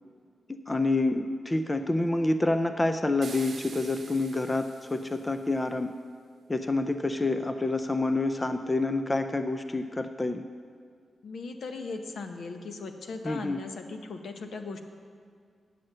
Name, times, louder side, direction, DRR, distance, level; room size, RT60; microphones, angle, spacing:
voice 1, 0.5-5.9 6.5-10.5 13.2-13.6, left 2 dB, 15° left, 8 dB, 0.3 m, -28 dB
sound 1, 3.2-5.6, right 5 dB, 55° right, 0.8 m, -46 dB
voice 2, 11.2-14.8, left 3 dB, 70° left, 6 dB, 0.8 m, -38 dB
9.6 x 7.6 x 6.6 m, 2.1 s
wide cardioid pair, 170°, 0 cm